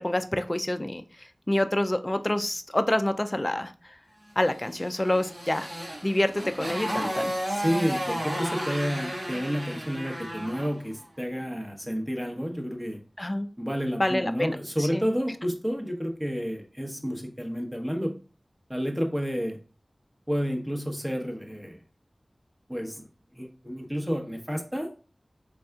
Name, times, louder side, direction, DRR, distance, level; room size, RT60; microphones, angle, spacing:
voice 1, 0.0-3.7 4.4-5.7 6.0-7.3 13.2-13.5 14.0-15.0, left 1 dB, 30° left, 9 dB, 0.4 m, -27 dB
Motorcycle, 4.7-10.8, equal, 65° right, 1.5 m, -33 dB
voice 2, 7.5-13.0 13.6-18.1 18.7-19.6 20.3-21.8 22.7-23.1 23.3-24.9, equal, 15° right, 3 dB, 1.0 m, -30 dB
4.1 x 3.4 x 2.3 m, 0.36 s
wide cardioid pair, 40°, 0 cm